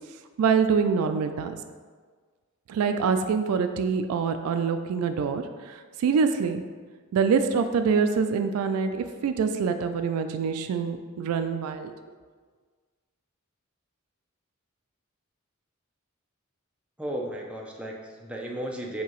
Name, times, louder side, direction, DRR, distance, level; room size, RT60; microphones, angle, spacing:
voice 1, 0.4-1.6 2.7-6.6 7.1-11.9, right 5 dB, 90° right, 12 dB, 0.3 m, -25 dB
voice 2, 17.0-19.0, right 1 dB, 5° right, -1 dB, 0.4 m, -34 dB
4.6 x 2.9 x 3.0 m, 1.5 s
head